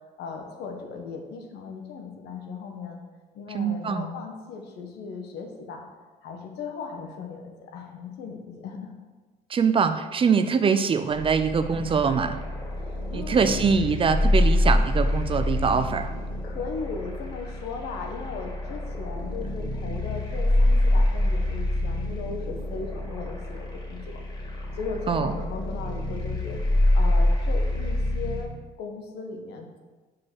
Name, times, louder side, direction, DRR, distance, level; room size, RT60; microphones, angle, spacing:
voice 1, 0.2-3.0 3.3-5.8 6.2-8.9 12.9-13.6 16.4-26.6 26.9-28.5 28.8-29.8, left 4 dB, 75° left, 3 dB, 1.3 m, -37 dB
voice 2, 3.5-4.1 9.5-12.4 13.1-16.1 25.1-25.3, right 5 dB, 30° right, 10 dB, 0.5 m, -23 dB
sound 1, 11.1-28.4, left 1 dB, 25° left, 2.4 m, -26 dB
5.7 x 5.3 x 6.2 m, 1.3 s
cardioid pair, 110°, 17 cm